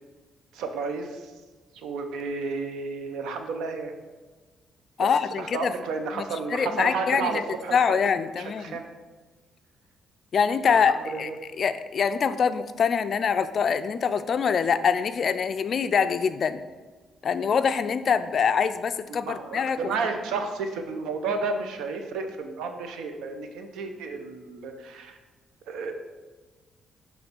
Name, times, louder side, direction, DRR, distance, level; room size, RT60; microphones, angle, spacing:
voice 1, 0.5-1.3 1.7-3.9 5.0-5.1 5.4-8.9 10.7-11.4 19.2-25.2 25.7-25.9, right 4 dB, 85° right, 6 dB, 0.6 m, -32 dB
voice 2, 5.0-5.7 6.2-6.3 6.5-7.4 7.7-8.8 10.3-11.3 11.6-16.6 17.2-19.8, left 6 dB, 55° left, 11 dB, 0.3 m, -24 dB
6.0 x 3.1 x 5.2 m, 1.3 s
cardioid pair, 90°, 0 cm